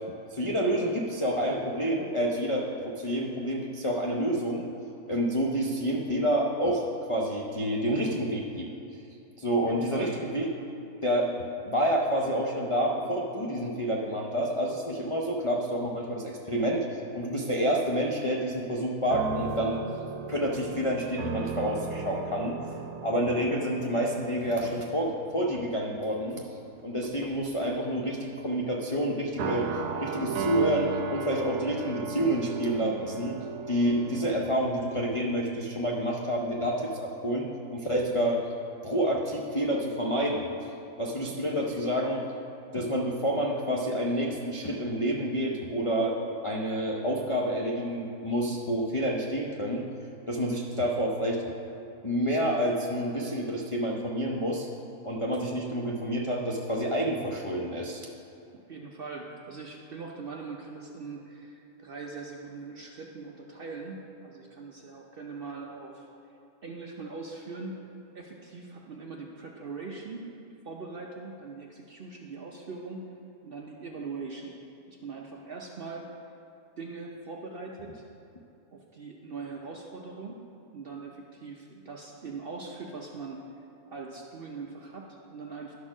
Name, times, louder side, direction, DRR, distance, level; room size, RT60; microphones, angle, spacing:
voice 1, 0.3-4.7 5.1-8.7 9.4-10.5 11.0-19.8 20.3-22.6 23.0-26.4 26.8-29.7 30.0-33.4 33.7-38.4 38.8-40.5 41.0-42.2 42.7-46.2 46.4-49.8 50.3-51.4 52.0-54.7 55.0-58.0, equal, 60° left, -2 dB, 0.3 m, -28 dB
voice 2, 9.7-10.2 41.3-41.8 58.7-66.1 66.6-67.8 68.1-70.2 70.6-73.1 73.4-74.6 74.9-76.1 76.8-78.0 78.7-80.4 80.7-83.4 83.9-85.7, right 4 dB, 60° right, 0 dB, 0.6 m, -41 dB
sound 1, 19.1-25.2 25.5-25.8 26.8-27.5 29.4-34.6, right 5 dB, 90° right, 1.1 m, -36 dB
11.5 x 4.4 x 5.9 m, 2.8 s
omnidirectional pair, 1.6 m